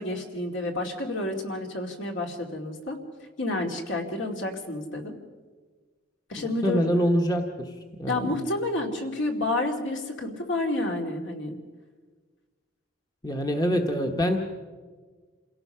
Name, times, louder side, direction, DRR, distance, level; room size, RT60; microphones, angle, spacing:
voice 1, 0.0-3.0 3.4-5.1 6.3-6.8 8.1-11.6, left 2 dB, 65° left, 2 dB, 2.6 m, -30 dB
voice 2, 6.4-8.3 13.2-14.4, equal, 20° left, 3 dB, 1.2 m, -25 dB
28.0 x 17.0 x 5.7 m, 1.5 s
head